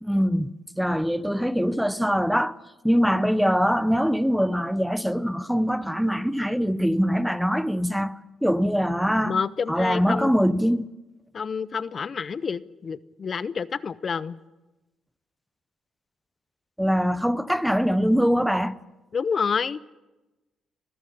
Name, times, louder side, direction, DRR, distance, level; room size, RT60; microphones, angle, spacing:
voice 1, 0.0-2.6 2.8-9.4 9.7-10.9 16.8-18.8, equal, ahead, 0.7 m, -23 dB
voice 2, 9.2-10.3 11.3-14.4 19.1-19.8, left 6 dB, 45° left, 0.6 m, -28 dB
22.0 x 14.5 x 9.9 m
cardioid pair, 90°, 0 cm